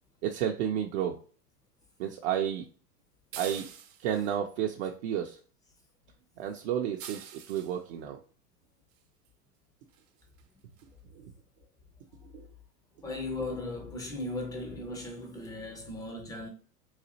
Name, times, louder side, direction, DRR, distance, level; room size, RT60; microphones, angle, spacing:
voice 1, 0.2-1.2 2.0-2.7 3.4-3.6 4.0-5.4 6.4-8.2 11.1-11.3 12.3-12.4, right 9 dB, 45° right, 0.5 m, -31 dB
sound 1, 3.3-4.3 7.0-7.8 9.3-9.4 9.9-10.1 10.4-10.5 10.8-10.9, right 9 dB, 70° right, 0.9 m, -44 dB
voice 2, 13.0-16.5, left 2 dB, 10° left, 0.4 m, -37 dB
4.0 x 2.4 x 2.7 m
hypercardioid pair, 110°, 48 cm